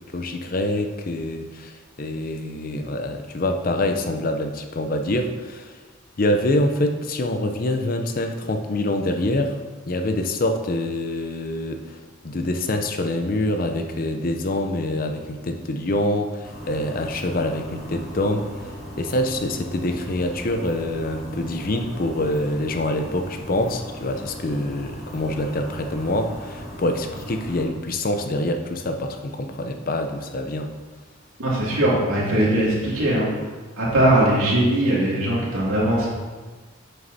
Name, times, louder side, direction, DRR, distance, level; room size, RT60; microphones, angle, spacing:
voice 1, 0.1-5.8 6.2-9.6 9.9-18.7 19.0-30.7, left 1 dB, 40° left, 6 dB, 0.5 m, -25 dB
sound 1, 16.4-27.6, equal, ahead, 2.4 m, -37 dB
voice 2, 31.4-33.3 33.8-36.1, right 1 dB, 80° right, -6 dB, 2.5 m, -20 dB
9.1 x 6.4 x 2.7 m, 1.3 s
head